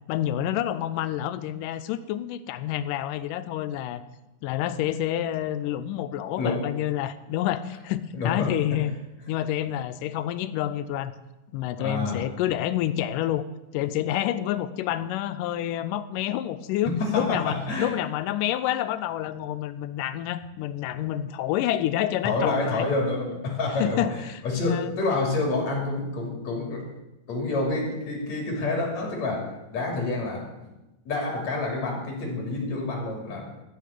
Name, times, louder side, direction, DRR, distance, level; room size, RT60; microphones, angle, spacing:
voice 1, 0.1-4.0 4.4-8.9 9.3-11.2 11.5-13.4 13.7-22.9 23.8-25.0, left 12 dB, 90° left, 12 dB, 2.2 m, -28 dB
voice 2, 8.1-8.8 11.8-12.2 16.8-17.9 22.2-26.8 27.3-30.7 31.1-33.5, left 3 dB, 60° left, 1 dB, 3.9 m, -28 dB
14.0 x 6.0 x 8.4 m, 0.99 s
omnidirectional pair, 3.7 m